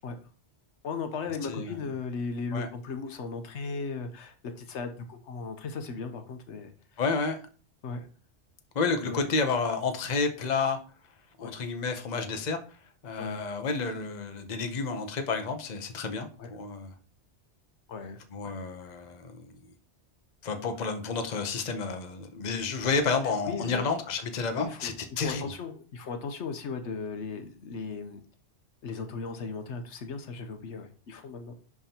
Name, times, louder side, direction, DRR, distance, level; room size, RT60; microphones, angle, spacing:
voice 1, 0.8-7.0 7.8-8.1 9.1-9.3 11.4-11.5 13.2-13.4 16.4-16.5 17.9-18.5 23.2-23.9 24.5-28.2 28.8-31.5, left 4 dB, 85° left, 7 dB, 1.1 m, -37 dB
voice 2, 1.5-1.8 2.5-2.7 7.0-7.4 8.7-10.8 11.4-12.6 13.0-16.9 18.3-19.6 20.4-25.5, left 4 dB, 45° left, 7 dB, 0.8 m, -30 dB
10.5 x 3.6 x 2.9 m, 0.39 s
omnidirectional pair, 1.1 m